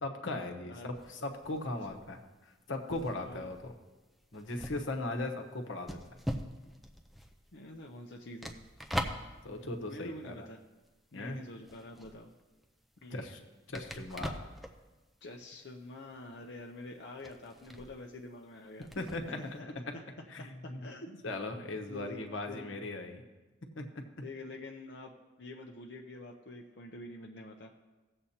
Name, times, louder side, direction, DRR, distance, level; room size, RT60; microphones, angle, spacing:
voice 1, 0.0-3.7 4.3-6.0 9.4-10.5 11.1-11.4 13.1-13.4 13.7-14.5 19.0-19.7 20.3-20.9 21.2-23.2 23.7-24.0, left 2 dB, 90° left, 4 dB, 1.1 m, -38 dB
sound 1, 0.9-11.2 11.4-19.6, equal, ahead, 0.5 m, -43 dB
voice 2, 7.5-8.6 9.9-10.6 11.1-12.3 13.0-13.3 15.2-18.9 19.4-20.0 20.4-21.2 21.9-22.2 22.5-22.8 24.2-25.1 25.4-27.7, left 2 dB, 65° left, 0 dB, 0.7 m, -47 dB
16.5 x 7.7 x 2.8 m, 1.2 s
head